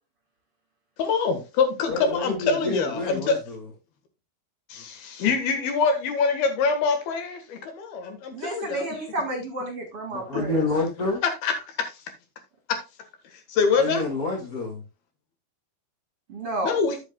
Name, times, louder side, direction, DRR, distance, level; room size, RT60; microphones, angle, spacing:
voice 1, 1.0-3.4 4.7-8.9 10.3-10.4 11.2-11.9 12.7-12.8 13.5-14.0 16.6-17.0, left 5 dB, 70° left, 3.1 m, -25 dB
voice 2, 1.9-3.6 10.1-11.2 13.7-14.8, left 2 dB, 50° left, 1.0 m, -28 dB
voice 3, 8.3-10.6 16.3-16.8, right 1 dB, 40° right, 2.4 m, -31 dB
12.0 x 7.9 x 2.3 m
omnidirectional pair, 5.0 m